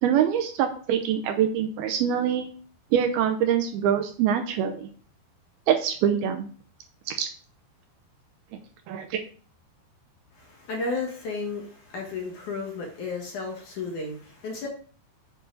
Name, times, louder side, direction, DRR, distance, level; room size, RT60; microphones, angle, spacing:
voice 1, 0.0-2.5 2.9-4.9 5.7-6.5 7.1-7.3 8.9-9.2, right 9 dB, 75° right, 5 dB, 2.4 m, -24 dB
voice 2, 10.3-14.7, left 3 dB, 55° left, 0 dB, 2.6 m, -33 dB
7.9 x 6.9 x 3.9 m, 0.43 s
omnidirectional pair, 4.8 m